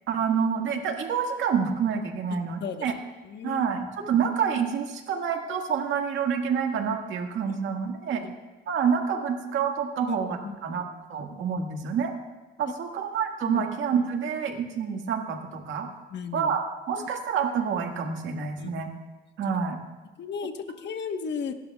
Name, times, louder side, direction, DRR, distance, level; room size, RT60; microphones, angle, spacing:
voice 1, 0.1-2.9 3.4-8.2 8.7-10.8 11.1-12.1 12.6-15.9 16.3-18.9 19.4-19.8, right 7 dB, 75° right, 3 dB, 1.8 m, -28 dB
voice 2, 2.3-2.9 3.2-3.7 8.1-8.3 10.1-10.2 10.4-10.8 13.4-13.6 16.1-16.5 16.9-17.1 18.6-18.7 20.2-21.5, left 6 dB, 60° left, 6 dB, 1.2 m, -35 dB
28.5 x 12.0 x 2.3 m, 1.1 s
cardioid pair, 90°, 20 cm